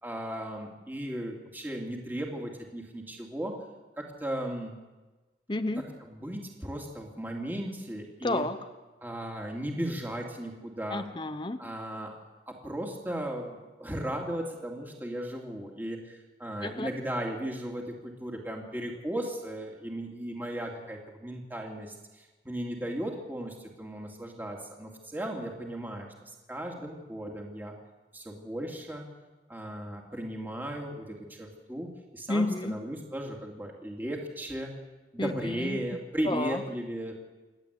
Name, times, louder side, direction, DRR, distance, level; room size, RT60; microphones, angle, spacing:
voice 1, 0.0-3.6 4.0-4.8 5.8-8.4 9.0-11.0 11.6-12.1 12.5-27.7 28.1-29.0 29.5-34.7 35.1-37.1, right 1 dB, 10° right, 0 dB, 2.7 m, -36 dB
voice 2, 5.5-5.8 8.2-8.6 10.9-11.6 16.6-16.9 32.3-32.7 35.2-35.8 36.2-36.6, left 2 dB, 25° left, 8 dB, 0.8 m, -30 dB
28.5 x 11.0 x 8.4 m, 1.2 s
head